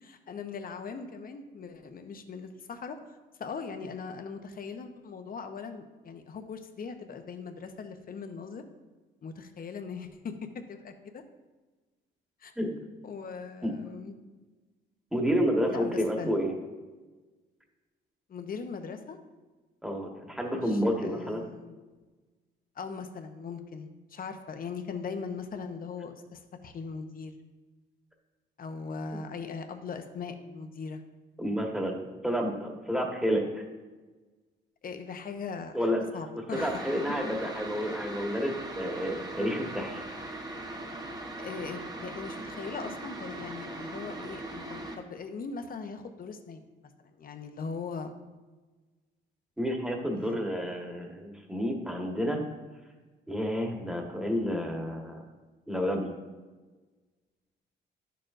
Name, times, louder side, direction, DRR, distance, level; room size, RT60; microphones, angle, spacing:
voice 1, 0.0-8.6 9.2-11.2 12.4-12.5 13.0-14.2 15.6-16.4 18.3-19.2 20.5-21.7 22.8-27.3 28.6-31.0 34.8-35.9 36.1-36.8 41.4-46.6 47.0-48.1 50.1-50.4, left 5 dB, 45° left, 7 dB, 0.8 m, -40 dB
voice 2, 15.1-16.5 19.8-21.4 31.4-33.6 35.7-36.0 36.5-40.0 49.6-52.4 53.3-55.2 55.7-56.1, equal, 5° right, 1 dB, 1.4 m, -30 dB
sound 1, 36.5-45.0, right 2 dB, 20° right, 1.1 m, -40 dB
10.0 x 6.7 x 2.5 m, 1.3 s
cardioid pair, 90°, 20 cm